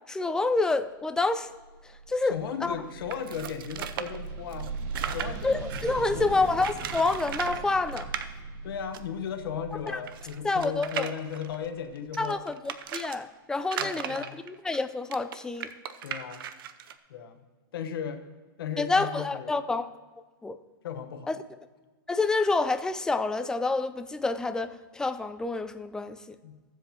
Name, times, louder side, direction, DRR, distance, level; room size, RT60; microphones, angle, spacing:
voice 1, 0.1-1.5 2.1-2.8 5.4-8.1 10.4-11.1 12.2-15.7 18.8-19.9 20.4-20.6 21.3-21.4 22.1-26.4, left 3 dB, 5° left, 10 dB, 0.4 m, -28 dB
sound 1, 1.5-12.2, right 4 dB, 45° right, 1.0 m, -40 dB
voice 2, 2.2-4.7 5.1-5.6 6.0-6.3 8.6-12.4 13.8-14.4 16.0-16.5 17.1-17.4 17.7-18.2 18.6-19.6 20.8-21.3 26.4-26.6, left 7 dB, 75° left, 6 dB, 1.1 m, -36 dB
sound 2, 3.1-6.0 6.6-7.6 7.9-8.3 8.9-9.0 9.2-9.3 9.9-13.2 13.6-16.9, right 9 dB, 70° right, 0.7 m, -37 dB
16.0 x 7.6 x 2.9 m, 1.3 s
hypercardioid pair, 135°, 12 cm